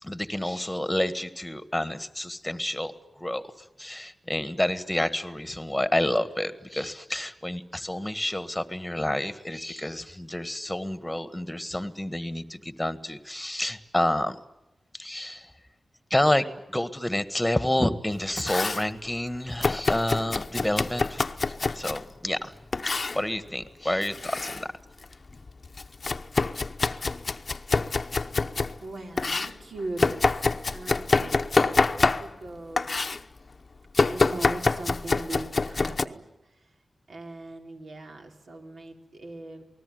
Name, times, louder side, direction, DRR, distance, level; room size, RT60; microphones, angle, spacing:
voice 1, 0.0-3.4 3.8-14.4 14.9-15.5 16.1-22.5 22.8-24.7, left 1 dB, 5° left, 12 dB, 1.6 m, -29 dB
Domestic sounds home sounds, 18.1-18.9 19.6-22.0 22.7-23.2 24.0-24.6 25.0-28.8 29.2-32.5 32.8-33.2 33.9-36.1, left 3 dB, 40° left, 0.9 m, -26 dB
voice 2, 28.8-30.3 30.7-32.9 34.0-36.7 37.1-39.6, right 2 dB, 70° right, 3 dB, 4.4 m, -40 dB
28.5 x 19.5 x 9.4 m, 0.93 s
wide cardioid pair, 120°, 0 cm